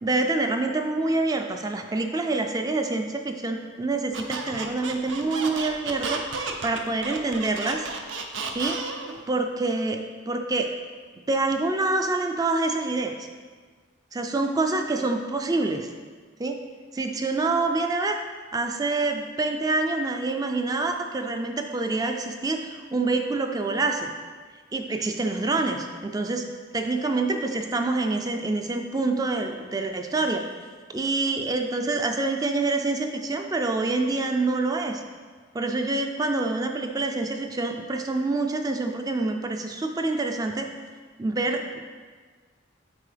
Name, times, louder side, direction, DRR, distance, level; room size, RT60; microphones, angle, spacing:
voice 1, 0.0-6.2 6.6-7.9 8.5-8.8 9.3-10.7 11.3-13.1 14.1-15.9 16.4-16.6 16.9-18.2 18.5-24.1 24.7-26.5 26.7-30.4 30.9-35.0 35.5-40.7 41.2-41.8, right 3 dB, 20° right, 5 dB, 0.3 m, -26 dB
Squeak, 4.1-9.2, right 4 dB, 65° right, 0.6 m, -33 dB
8.2 x 4.5 x 3.4 m, 1.5 s
head